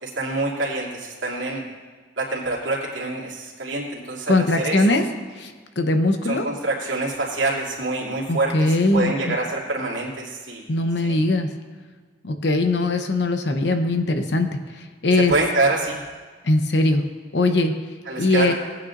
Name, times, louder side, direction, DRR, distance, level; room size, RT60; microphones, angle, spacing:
voice 1, 0.0-1.6 2.2-5.0 6.2-10.7 11.0-11.2 15.1-16.0 18.1-18.5, right 2 dB, 70° right, -4 dB, 2.7 m, -26 dB
voice 2, 4.3-5.0 5.4-6.5 8.3-9.4 10.7-11.5 12.2-14.5 14.8-15.3 16.4-17.0 17.3-17.7 18.2-18.5, left 2 dB, 55° left, 6 dB, 0.8 m, -20 dB
18.5 x 9.1 x 2.6 m, 1.5 s
head